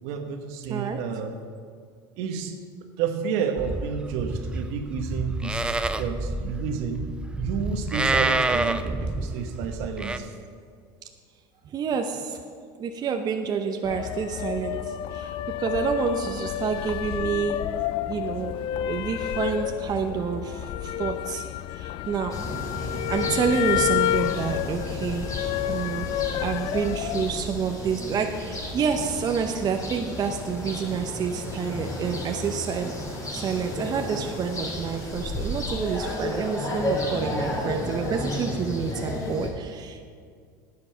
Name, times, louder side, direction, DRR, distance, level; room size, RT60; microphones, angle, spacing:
voice 1, 0.0-1.4 2.2-2.6 3.0-7.1 7.4-10.3, right 6 dB, 70° right, 6 dB, 1.2 m, -30 dB
voice 2, 0.6-1.0 11.7-12.4 12.8-17.6 18.1-18.6 18.9-22.4 23.1-25.3 25.7-26.1 26.4-33.0 33.3-40.0, right 6 dB, 35° right, 5 dB, 0.8 m, -28 dB
Livestock farm animals working animals, 3.6-10.2, right 2 dB, 10° right, 0.4 m, -28 dB
sound 1, 13.8-27.4, left 13 dB, 50° left, 0.4 m, -30 dB
sound 2, 22.3-39.5, left 1 dB, 30° left, 3.3 m, -33 dB
10.5 x 8.6 x 5.7 m, 2.1 s
supercardioid pair, 105°, 11 cm